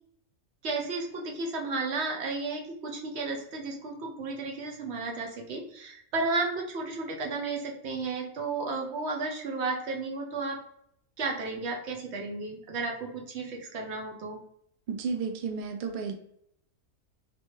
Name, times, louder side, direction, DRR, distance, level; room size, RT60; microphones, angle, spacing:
voice 1, 0.6-10.6 11.2-14.4, right 3 dB, 55° right, 1 dB, 0.9 m, -33 dB
voice 2, 14.9-16.1, right 5 dB, 85° right, 5 dB, 0.4 m, -32 dB
3.4 x 2.8 x 3.1 m, 0.69 s
omnidirectional pair, 1.5 m